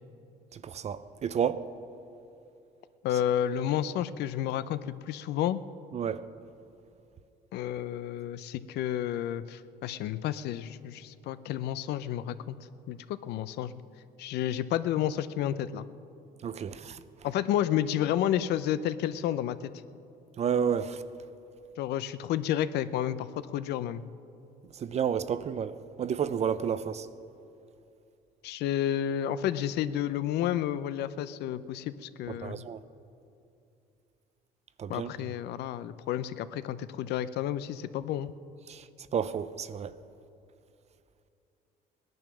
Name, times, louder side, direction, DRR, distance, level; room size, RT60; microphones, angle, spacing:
voice 1, 0.5-1.6 5.9-6.3 16.4-17.0 20.4-21.0 24.8-27.1 32.3-32.8 34.8-35.1 38.7-38.8 39.1-39.9, right 8 dB, 40° right, 0.6 m, -31 dB
voice 2, 3.0-5.6 7.5-12.6 12.9-13.7 14.2-15.9 17.2-19.6 21.8-24.0 28.4-32.6 34.9-38.3, left 11 dB, 75° left, 0.6 m, -31 dB
18.5 x 10.5 x 6.1 m
cardioid pair, 110°, 17 cm